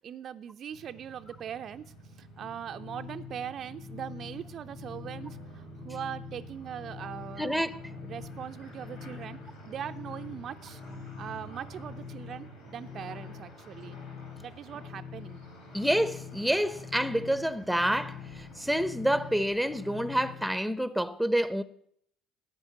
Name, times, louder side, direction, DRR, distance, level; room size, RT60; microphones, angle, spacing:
voice 1, 0.0-7.6 8.0-9.4 9.7-10.8 11.2-14.0 14.4-15.4, right 9 dB, 45° right, 0.6 m, -41 dB
sound 1, 0.7-20.3, right 2 dB, 75° left, 5.7 m, -50 dB
sound 2, 2.4-20.6, left 7 dB, 40° left, 4.2 m, -46 dB
voice 2, 7.4-7.8 15.7-18.2 18.6-21.6, equal, ahead, 0.9 m, -28 dB
13.0 x 8.9 x 9.3 m
figure-of-eight pair, 60°, 0 cm